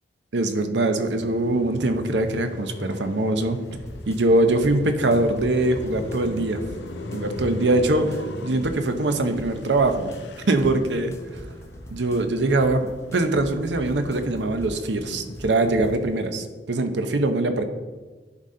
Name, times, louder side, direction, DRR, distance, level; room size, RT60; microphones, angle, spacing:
voice 1, 0.3-3.6 4.1-6.6 7.1-10.1 10.5-11.4 11.9-17.6, right 2 dB, 75° right, 8 dB, 0.7 m, -23 dB
Car passing by, 1.0-13.5 13.8-16.3, left 1 dB, 75° left, 0.6 m, -38 dB
sound 1, 3.7-15.9, equal, 15° left, 0.6 m, -42 dB
11.0 x 4.1 x 3.7 m, 1.3 s
head